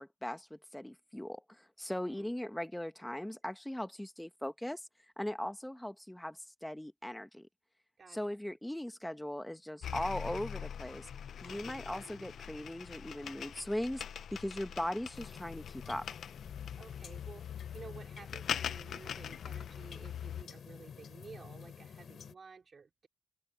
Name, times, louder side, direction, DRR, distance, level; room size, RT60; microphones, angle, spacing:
voice 1, 0.0-4.8 5.2-7.5 8.1-11.1 11.4-14.0 14.3-16.1, left 1 dB, 5° left, 1.8 m, -39 dB
voice 2, 8.0-8.4 11.4-11.8 14.5-14.9 16.8-23.1, right 5 dB, 50° right, 4.2 m, -53 dB
sound 1, 9.8-20.4, left 8 dB, 90° left, 0.7 m, -42 dB
sound 2, 15.1-22.3, left 7 dB, 75° left, 4.5 m, -50 dB
cardioid pair, 100°, 0 cm